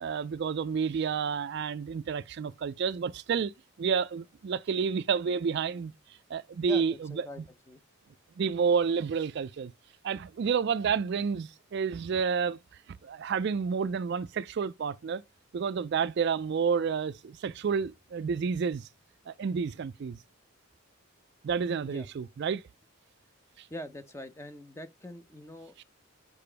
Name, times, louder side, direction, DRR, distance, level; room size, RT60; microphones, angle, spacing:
voice 1, 0.0-3.5 3.8-5.9 6.3-7.3 8.4-9.7 10.0-12.6 12.9-15.2 15.5-18.9 19.3-20.2 21.4-22.6 23.6-23.7 25.8-25.9, right 6 dB, 50° right, 0.3 m, -30 dB
voice 2, 6.6-7.4 7.7-7.8 21.8-22.1 23.7-25.8, equal, 15° left, 0.6 m, -43 dB
6.8 x 4.8 x 3.3 m
head